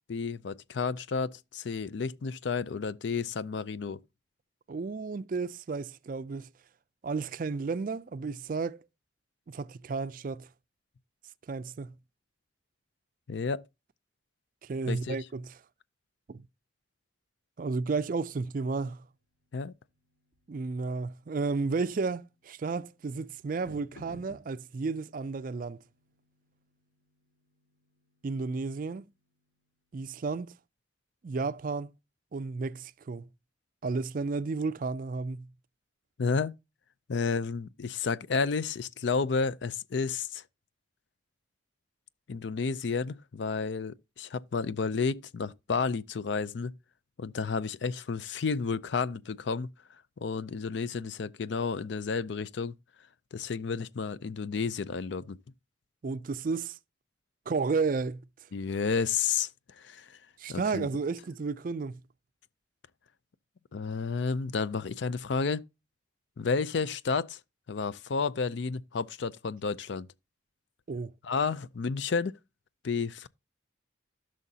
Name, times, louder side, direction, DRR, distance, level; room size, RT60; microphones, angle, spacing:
voice 1, 0.1-4.0 13.3-13.6 14.9-15.2 19.5-19.7 36.2-36.5 37.1-40.4 42.3-46.7 47.2-49.7 50.2-52.7 53.3-55.4 58.5-59.5 59.8-60.2 60.5-60.9 63.7-65.6 66.4-67.4 67.7-70.1 71.2-72.4 72.8-73.3, left 5 dB, 70° left, 0.5 m, -31 dB
voice 2, 4.7-6.5 7.0-8.8 9.5-10.5 11.5-11.9 14.6-15.6 16.3-16.4 17.6-19.0 20.5-25.8 28.2-29.1 29.9-30.5 31.2-31.9 32.3-33.3 33.8-35.5 56.0-56.8 57.5-58.2 60.4-62.0 70.9-71.1, right 4 dB, 45° right, 0.4 m, -32 dB
sound 1, 19.1-29.9, equal, 85° left, 3.5 m, -59 dB
15.0 x 6.3 x 2.8 m
head